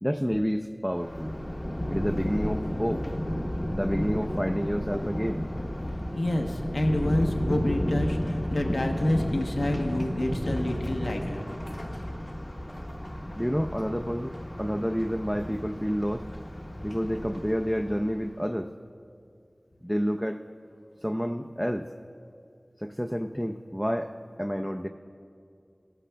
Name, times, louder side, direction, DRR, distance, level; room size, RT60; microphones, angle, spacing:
voice 1, 0.0-1.3 1.9-3.0 3.7-5.4 13.4-16.3 16.8-18.7 19.8-20.4 21.0-21.9 22.8-24.9, equal, ahead, 4 dB, 0.4 m, -29 dB
Thunder, 0.9-18.3, equal, 30° left, 0.7 m, -32 dB
voice 2, 6.1-11.4, left 1 dB, 85° left, 3 dB, 0.7 m, -28 dB
15.0 x 11.5 x 2.2 m, 2.4 s
wide cardioid pair, 40°, 0 cm